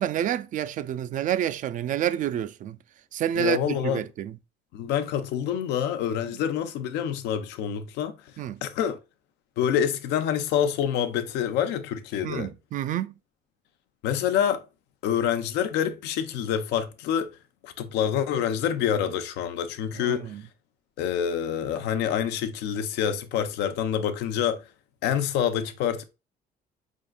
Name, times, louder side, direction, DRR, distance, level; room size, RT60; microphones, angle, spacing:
voice 1, 0.0-2.8 3.1-4.4 8.4-8.6 12.2-13.1 20.0-20.4, right 10 dB, 50° right, 0.4 m, -28 dB
voice 2, 3.4-4.0 4.7-8.2 8.6-9.0 9.6-12.5 14.0-14.6 15.0-17.3 17.6-20.3 21.0-24.6 25.0-26.0, left 9 dB, 85° left, 0.6 m, -27 dB
4.7 x 3.7 x 2.2 m
cardioid pair, 110°, 17 cm